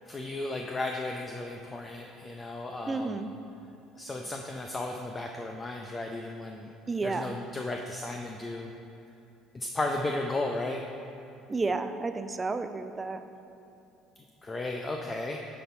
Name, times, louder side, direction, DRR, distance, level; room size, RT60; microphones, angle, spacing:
voice 1, 0.1-3.3 4.0-6.7 7.0-8.7 9.5-10.8 14.2-15.6, left 2 dB, 25° left, 2 dB, 0.5 m, -34 dB
voice 2, 2.9-3.3 6.9-7.3 11.5-13.2, right 3 dB, 25° right, 9 dB, 0.4 m, -31 dB
8.9 x 4.2 x 4.3 m, 2.7 s
hypercardioid pair, 70°, 0 cm